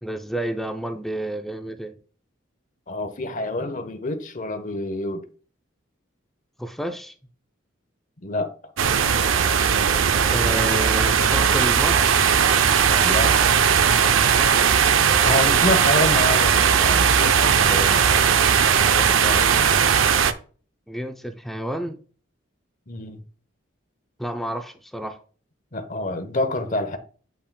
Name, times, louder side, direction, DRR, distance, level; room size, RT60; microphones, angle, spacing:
voice 1, 0.0-2.0 6.6-7.1 10.3-12.1 20.9-22.0 24.2-25.2, right 1 dB, ahead, 0.4 m, -30 dB
voice 2, 2.9-5.3 8.2-8.5 13.0-13.4 15.2-18.2 18.9-19.7 22.9-23.2 25.7-27.0, left 1 dB, 40° left, 0.8 m, -27 dB
sound 1, 8.8-20.3, right 7 dB, 75° right, 0.5 m, -18 dB
8.4 x 5.7 x 2.2 m
head